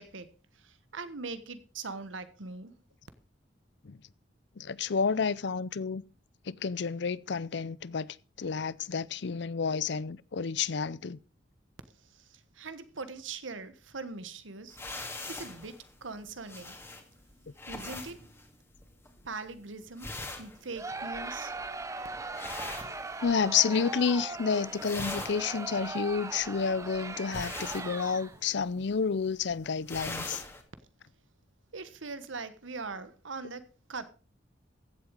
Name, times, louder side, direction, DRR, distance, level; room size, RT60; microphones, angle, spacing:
voice 1, 0.0-2.7 12.1-14.8 15.3-16.8 17.7-18.2 19.2-20.1 20.4-21.5 31.7-34.1, right 4 dB, 85° right, 1.3 m, -41 dB
voice 2, 4.6-6.0 6.5-8.1 8.4-11.2 23.2-30.4, left 5 dB, 65° left, 0.5 m, -30 dB
sound 1, 14.7-23.7 23.9-24.4 24.6-30.6, left 2 dB, 15° left, 2.0 m, -43 dB
Crowd, 20.8-28.5, right 3 dB, 15° right, 0.8 m, -39 dB
15.0 x 8.0 x 5.1 m
head